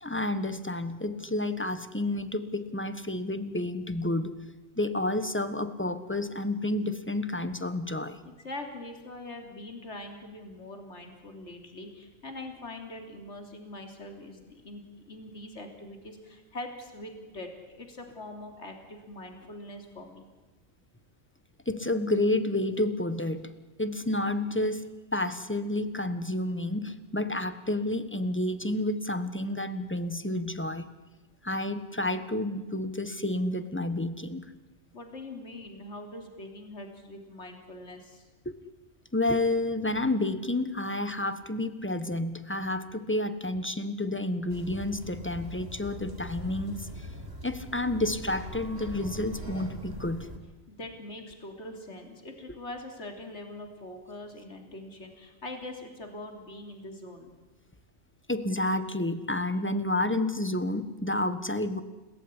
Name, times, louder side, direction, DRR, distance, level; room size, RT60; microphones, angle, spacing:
voice 1, 0.0-4.3 4.8-8.2 21.7-23.5 23.8-24.9 25.1-30.9 31.4-34.4 38.4-38.5 39.1-47.1 47.4-50.3 58.3-61.8, left 1 dB, 10° left, 11 dB, 1.4 m, -30 dB
voice 2, 8.3-20.3 34.9-38.3 50.7-57.3, left 1 dB, 55° left, 4 dB, 3.7 m, -43 dB
sound 1, 44.5-50.4, equal, 45° right, 3.4 m, -41 dB
30.0 x 18.5 x 9.9 m, 1.2 s
omnidirectional pair, 1.4 m